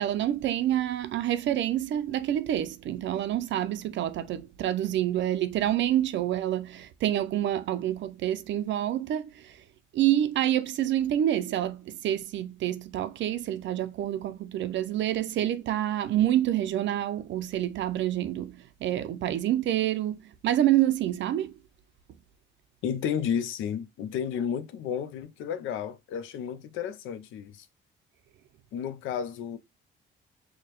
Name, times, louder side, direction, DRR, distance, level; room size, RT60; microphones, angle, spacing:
voice 1, 0.0-9.6 9.9-21.5, right 12 dB, 70° right, 0.4 m, -27 dB
voice 2, 22.8-27.7 28.7-29.6, left 8 dB, 85° left, 0.5 m, -32 dB
4.8 x 2.1 x 2.9 m
cardioid pair, 90°, 20 cm